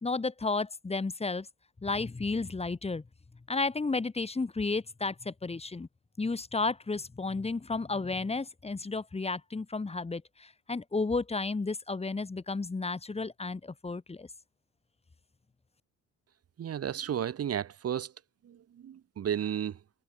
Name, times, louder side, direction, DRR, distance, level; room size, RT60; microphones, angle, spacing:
voice 1, 0.0-1.5 1.8-3.0 3.5-5.9 6.2-14.3, left 3 dB, 20° left, 1.5 m, -32 dB
voice 2, 16.6-18.1 18.4-19.8, right 9 dB, 50° right, 1.4 m, -33 dB
cardioid pair, 90°, 30 cm